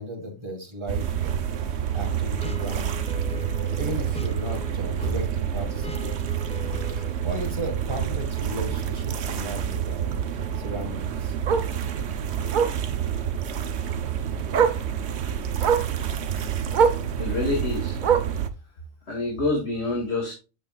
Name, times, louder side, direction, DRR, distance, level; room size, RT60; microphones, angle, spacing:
voice 1, 0.0-3.1 3.8-6.3 6.8-10.1 10.6-11.3, equal, 25° right, 2 dB, 1.8 m, -36 dB
sound 1, 0.9-18.5, right 8 dB, 65° right, 1.0 m, -28 dB
sound 2, 2.0-7.1, left 2 dB, 5° left, 0.5 m, -40 dB
Bark, 5.0-5.2 5.6-5.7 6.1-6.2 6.4-6.5 7.9-8.0 10.5-10.6 11.5-11.7 12.5-12.8 14.0-14.1 14.5-14.9 15.6-15.9 16.7-17.1 18.0-18.4 19.4-19.5, right 6 dB, 50° right, 0.7 m, -22 dB
voice 2, 17.2-18.0 19.1-20.3, left 2 dB, 65° left, 0 dB, 2.5 m, -27 dB
8.4 x 7.2 x 2.3 m, 0.30 s
omnidirectional pair, 1.2 m